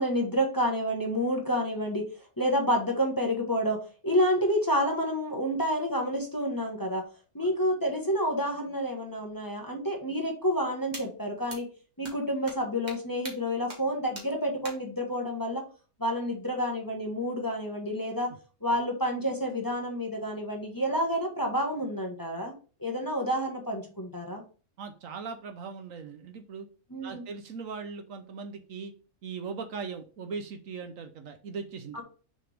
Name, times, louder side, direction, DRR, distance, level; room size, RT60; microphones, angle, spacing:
voice 1, 0.0-2.0 2.4-7.0 7.3-11.7 12.0-15.6 16.0-18.3 18.6-22.5 22.8-24.4 26.9-27.2 31.9-32.0, equal, 15° left, 1 dB, 1.1 m, -29 dB
sound 1, 10.9-11.0 11.5-11.6 12.0-12.1 12.5-12.6 12.9-13.0 13.2-13.3 13.7-13.8 14.2-14.3 14.6-14.7, right 1 dB, 30° right, 1.8 m, -40 dB
voice 2, 24.8-26.7 27.0-28.9 29.2-32.0, right 5 dB, 70° right, 7 dB, 1.1 m, -39 dB
6.3 x 4.4 x 3.4 m, 0.37 s
omnidirectional pair, 1.5 m